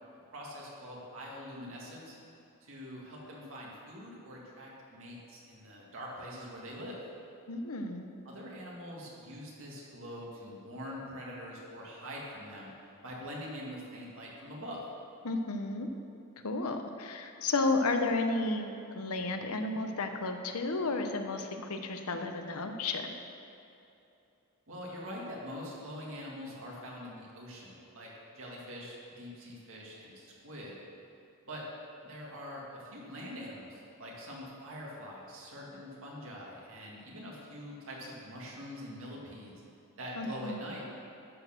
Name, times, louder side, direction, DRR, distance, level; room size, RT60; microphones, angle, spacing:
voice 1, 0.3-2.2 2.6-7.0 8.2-12.7 13.0-14.8 24.7-30.8 31.5-31.6 32.0-39.6 40.0-40.8, equal, 65° right, -4 dB, 2.2 m, -44 dB
voice 2, 7.5-8.1 15.2-15.9 16.4-23.1 40.2-40.6, left 3 dB, 90° left, 6 dB, 0.8 m, -32 dB
12.0 x 4.4 x 6.5 m, 2.8 s
head